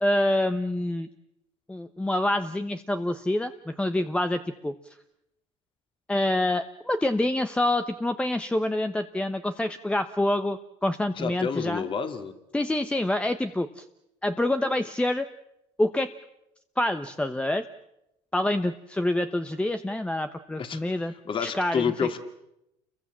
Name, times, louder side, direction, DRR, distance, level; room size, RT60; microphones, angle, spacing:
voice 1, 0.0-1.1 1.7-4.7 6.1-11.8 12.5-13.8 14.2-15.3 15.8-16.1 16.8-17.6 18.3-21.1 21.4-21.9, left 1 dB, 10° left, 9 dB, 1.0 m, -26 dB
voice 2, 11.1-12.3 20.6-20.8 21.3-22.2, left 6 dB, 35° left, 7 dB, 2.7 m, -29 dB
29.5 x 23.0 x 7.5 m, 0.85 s
cardioid pair, 120°, 14 cm